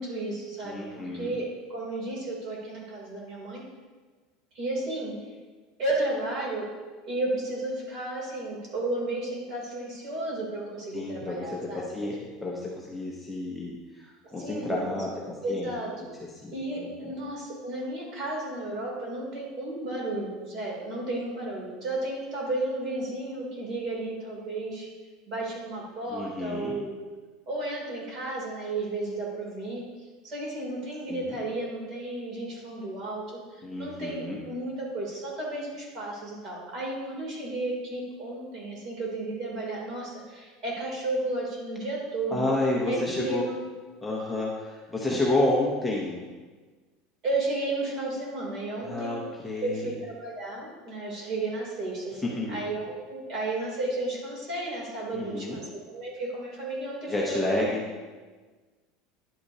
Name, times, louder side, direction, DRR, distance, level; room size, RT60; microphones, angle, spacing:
voice 1, 0.0-3.6 4.5-5.1 5.8-6.7 7.0-11.8 14.4-15.0 15.4-15.9 16.5-24.9 25.3-26.9 27.5-29.8 30.2-42.4 42.8-43.6 47.2-49.2 49.6-57.7, right 2 dB, 35° right, -3 dB, 2.9 m, -33 dB
voice 2, 0.6-1.3 10.9-15.7 16.4-17.2 26.1-26.8 31.1-31.4 33.6-34.4 42.3-43.5 44.0-46.3 48.8-49.9 52.2-52.6 55.1-55.6 57.1-57.8, left 2 dB, 5° left, -5 dB, 0.8 m, -30 dB
11.0 x 8.4 x 2.8 m, 1.3 s
cardioid pair, 170°, 0 cm